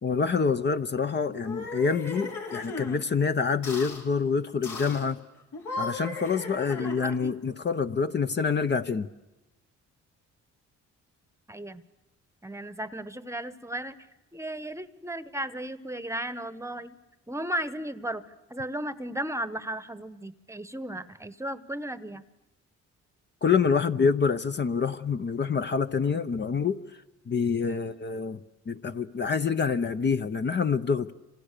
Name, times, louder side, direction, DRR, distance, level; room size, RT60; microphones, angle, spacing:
voice 1, 0.0-5.2 5.8-9.1 23.4-26.8 27.3-28.4 28.7-31.1, left 5 dB, 35° left, 9 dB, 0.9 m, -26 dB
sound 1, 1.3-3.0 3.6-4.0 4.6-5.1 5.5-7.3, left 3 dB, 75° left, 6.0 m, -37 dB
voice 2, 6.7-7.3 11.5-11.9 12.4-14.0 14.3-17.0 17.3-18.2 18.5-22.2 27.7-27.9, right 1 dB, 10° right, 14 dB, 1.1 m, -35 dB
29.5 x 27.0 x 6.8 m, 1.0 s
cardioid pair, 90°, 30 cm